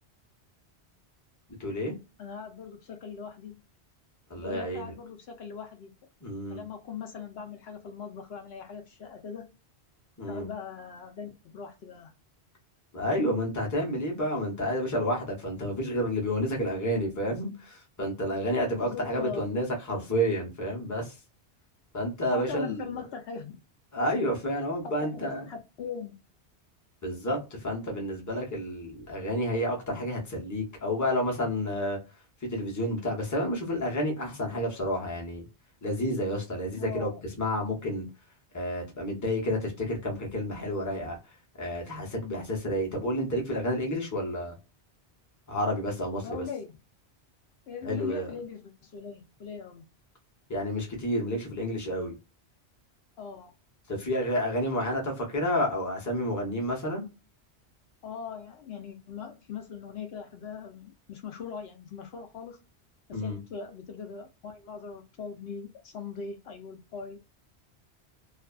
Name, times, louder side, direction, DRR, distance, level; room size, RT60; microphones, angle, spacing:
voice 1, 1.6-1.9 4.3-4.9 6.2-6.6 10.2-10.5 12.9-21.2 21.9-22.8 23.9-25.5 27.0-32.0 32.4-35.5 35.8-37.1 37.4-38.1 38.5-41.2 41.6-44.5 45.5-46.4 47.8-48.3 50.5-52.1 53.9-57.0 63.1-63.4, equal, 20° left, 0.8 m, -30 dB
voice 2, 2.2-3.6 4.4-5.9 6.5-9.5 10.3-12.1 18.7-19.5 22.3-23.5 24.8-26.1 36.8-37.3 46.2-46.7 47.7-49.9 53.2-53.5 58.0-62.6 63.1-67.2, left 6 dB, 70° left, 0.8 m, -40 dB
2.5 x 2.3 x 2.3 m
omnidirectional pair, 1.1 m